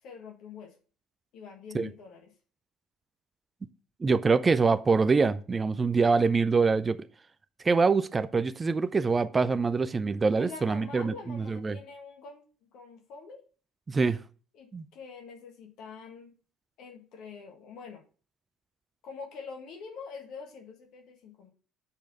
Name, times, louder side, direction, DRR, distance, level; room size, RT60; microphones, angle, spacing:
voice 1, 0.0-0.7 1.3-2.3 10.4-12.4 12.7-13.4 14.5-16.3 16.8-18.0 19.0-21.5, left 5 dB, 55° left, 1.7 m, -45 dB
voice 2, 4.0-7.0 7.6-11.8 13.9-14.2 14.7-14.9, right 4 dB, 25° right, 0.5 m, -25 dB
7.1 x 4.4 x 5.4 m
figure-of-eight pair, 55°, 0 cm